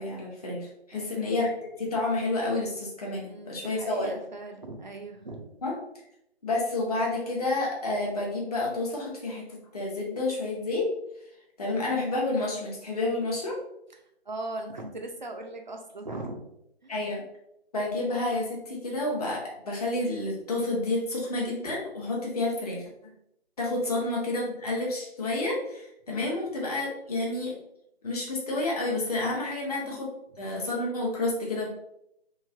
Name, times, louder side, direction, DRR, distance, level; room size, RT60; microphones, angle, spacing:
voice 1, 0.0-1.5 1.8-4.1 5.6-5.7 6.4-9.4 9.7-10.9 11.6-13.6 16.9-17.2 17.7-22.9 23.6-27.5 28.0-30.1 30.4-31.7, left 2 dB, 35° left, -3 dB, 0.7 m, -29 dB
voice 2, 0.9-1.5 3.2-5.4 11.8-11.9 14.3-16.4 16.8-16.9 23.8-24.0 26.1-26.4 29.8-30.0 30.3-30.5, right 2 dB, 45° right, 4 dB, 0.5 m, -40 dB
3.1 x 2.6 x 2.3 m, 0.78 s
figure-of-eight pair, 155°, 32 cm